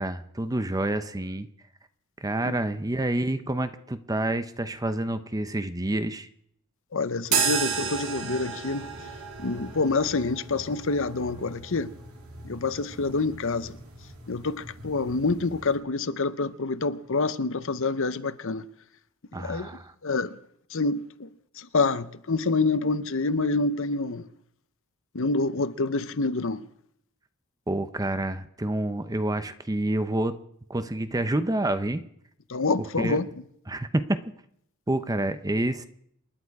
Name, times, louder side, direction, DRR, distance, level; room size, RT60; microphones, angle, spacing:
voice 1, 0.0-1.5 2.2-6.3 19.3-19.9 27.7-30.4 30.7-32.0 33.0-33.2 33.7-34.2 34.9-35.9, right 1 dB, 15° right, 0.7 m, -28 dB
voice 2, 6.9-8.9 9.4-11.9 12.4-13.8 14.3-18.6 19.4-19.7 20.0-20.3 20.7-21.3 21.6-24.3 25.1-26.7 32.5-33.3, left 3 dB, 60° left, 0.8 m, -27 dB
sound 1, 7.2-15.8, right 6 dB, 75° right, 2.9 m, -34 dB
28.0 x 11.0 x 4.8 m
head